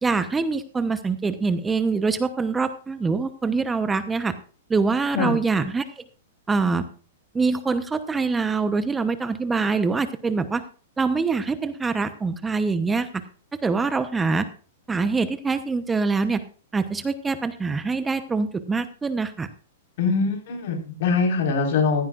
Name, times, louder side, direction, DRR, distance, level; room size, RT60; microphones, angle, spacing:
voice 1, 0.0-4.3 4.7-6.0 6.5-6.8 7.3-10.6 11.0-13.1 13.6-14.5 14.9-16.4 16.7-19.5, right 4 dB, 15° right, 11 dB, 0.9 m, -24 dB
voice 2, 20.0-22.1, left 4 dB, 60° left, 1 dB, 4.6 m, -23 dB
16.0 x 14.5 x 2.5 m, 0.39 s
hypercardioid pair, 115°, 0 cm